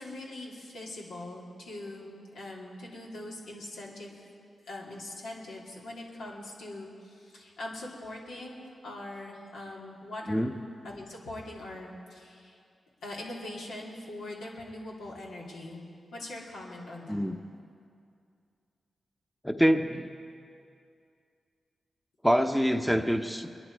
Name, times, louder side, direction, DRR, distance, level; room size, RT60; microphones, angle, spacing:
voice 1, 0.0-4.3 4.7-10.5 10.8-12.6 13.0-15.8 16.1-17.2, left 1 dB, 90° left, -4 dB, 3.0 m, -42 dB
voice 2, 19.4-20.1 22.2-23.5, equal, 5° left, 7 dB, 0.9 m, -25 dB
23.0 x 11.0 x 4.7 m, 2.4 s
supercardioid pair, 45°, 0 cm